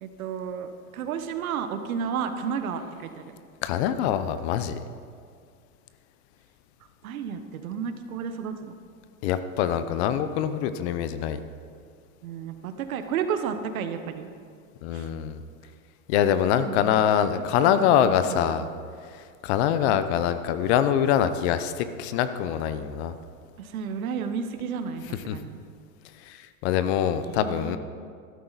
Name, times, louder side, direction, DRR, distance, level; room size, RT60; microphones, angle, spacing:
voice 1, 0.0-3.3 7.0-8.7 12.2-14.3 14.9-15.1 16.6-17.0 17.6-18.6 23.6-25.6 27.2-27.8, right 7 dB, 70° right, 8 dB, 1.3 m, -32 dB
voice 2, 3.6-4.8 9.2-11.4 14.8-15.4 16.1-18.7 19.1-23.1 25.3-25.4 26.2-27.8, left 9 dB, 50° left, 11 dB, 0.8 m, -24 dB
12.5 x 12.5 x 4.1 m, 2.2 s
hypercardioid pair, 125°, 43 cm